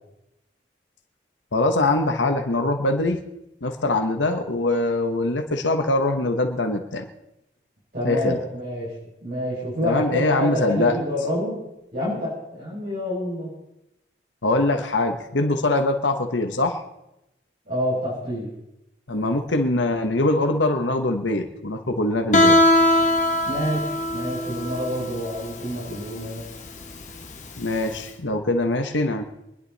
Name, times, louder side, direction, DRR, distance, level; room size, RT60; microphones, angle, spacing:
voice 1, 1.5-3.2 3.6-7.0 8.0-8.4 9.8-11.0 14.4-16.8 19.1-22.6 27.6-29.2, left 2 dB, 85° left, 5 dB, 1.3 m, -23 dB
voice 2, 7.9-8.9 9.2-11.6 11.9-13.5 17.7-18.5 23.5-26.4, equal, 45° right, -9 dB, 6.8 m, -27 dB
Guitar, 22.3-28.0, left 1 dB, 40° left, 1.6 m, -21 dB
25.0 x 10.5 x 4.2 m, 0.88 s
head